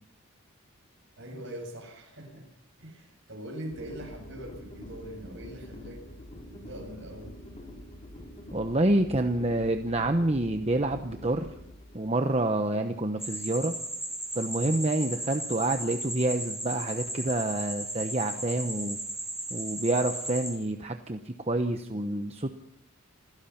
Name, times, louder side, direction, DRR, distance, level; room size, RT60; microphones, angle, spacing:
voice 1, 1.2-2.5 2.8-6.0 6.5-7.4, right 1 dB, 55° right, 3 dB, 7.6 m, -42 dB
sound 1, 3.7-13.8, left 1 dB, 30° left, 5.5 m, -46 dB
voice 2, 8.5-11.5 11.9-13.8 14.3-19.0 19.5-22.5, right 2 dB, 30° right, 6 dB, 1.0 m, -28 dB
sound 2, 13.2-20.5, right 1 dB, ahead, 4.4 m, -36 dB
28.0 x 16.0 x 5.9 m, 0.76 s
head